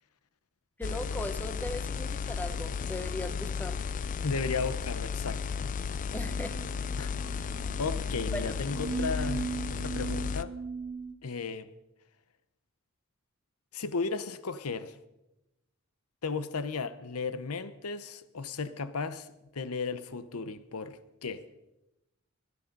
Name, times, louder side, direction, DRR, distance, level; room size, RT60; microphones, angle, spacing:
sound 1, 0.8-10.4, left 6 dB, 35° left, 0.4 m, -34 dB
voice 1, 0.8-3.8 6.1-6.5 8.3-8.5, left 1 dB, 10° left, 0.8 m, -38 dB
voice 2, 4.2-5.4 7.0-7.1 7.8-10.5 11.2-11.7 13.7-15.0 16.2-19.3 19.5-21.5, left 4 dB, 85° left, 0.8 m, -35 dB
sound 2, 6.1-11.1, right 4 dB, 50° right, 1.4 m, -38 dB
16.5 x 11.0 x 5.3 m
head